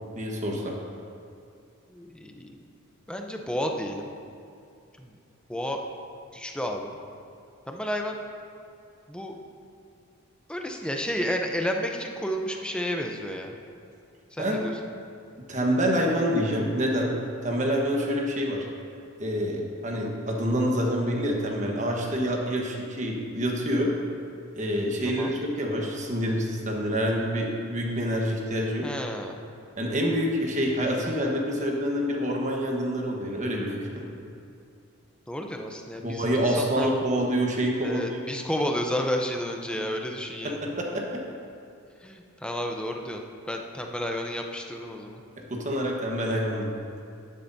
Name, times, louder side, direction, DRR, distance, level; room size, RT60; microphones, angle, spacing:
voice 1, 0.2-0.8 14.4-14.6 15.5-17.1 17.4-18.7 19.2-23.9 24.5-28.9 29.8-34.1 36.0-38.0 40.4-41.0 45.5-46.7, equal, 35° right, -1 dB, 1.2 m, -27 dB
voice 2, 1.9-2.6 3.1-4.1 5.0-5.2 5.5-5.8 6.3-7.0 7.7-8.2 9.1-9.3 10.5-13.5 14.3-14.8 25.0-25.3 28.8-29.4 35.3-36.9 37.8-40.6 42.0-43.2 43.5-45.2, equal, 5° left, 2 dB, 0.6 m, -31 dB
11.5 x 10.5 x 2.7 m, 2.5 s
head